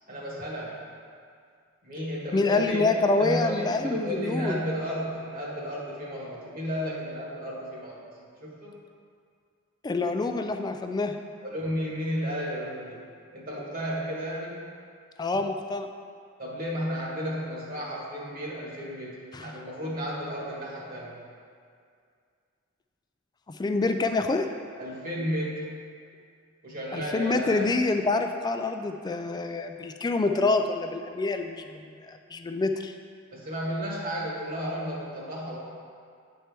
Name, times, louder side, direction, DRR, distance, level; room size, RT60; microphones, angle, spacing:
voice 1, 0.1-0.7 1.8-8.8 11.4-13.0 13.3-14.6 16.4-21.2 24.8-25.7 26.6-27.7 33.3-35.6, equal, 45° right, -5 dB, 1.5 m, -33 dB
voice 2, 2.3-4.6 9.8-11.2 15.2-15.9 19.3-19.5 23.5-24.5 26.9-31.7 32.1-32.9, left 3 dB, 20° left, 6 dB, 0.3 m, -26 dB
8.9 x 4.4 x 3.4 m, 2.2 s
head